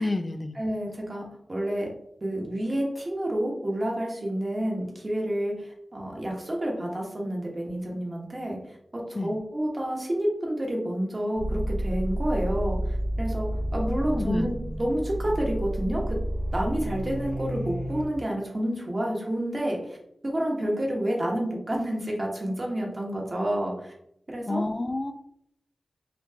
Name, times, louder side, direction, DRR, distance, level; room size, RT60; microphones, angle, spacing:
voice 1, 0.0-0.6 9.1-9.3 13.9-14.5 24.5-25.1, left 2 dB, 40° left, 8 dB, 0.3 m, -29 dB
voice 2, 0.6-1.9 2.2-8.6 8.9-16.2 16.5-20.0 20.2-23.9 24.3-24.6, right 1 dB, 40° right, -1 dB, 1.3 m, -29 dB
sound 1, 11.4-18.1, right 1 dB, 65° right, 0.8 m, -30 dB
4.4 x 2.6 x 2.8 m, 0.73 s
cardioid pair, 40°, 0 cm